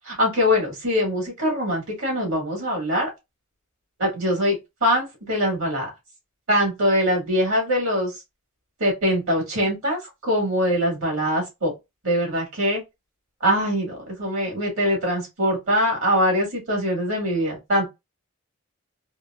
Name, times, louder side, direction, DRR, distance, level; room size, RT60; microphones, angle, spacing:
voice 1, 0.0-3.1 4.0-5.9 6.5-8.1 8.8-11.7 12.0-12.8 13.4-17.9, equal, 65° right, 1.8 m, -23 dB
3.4 x 2.6 x 2.3 m
head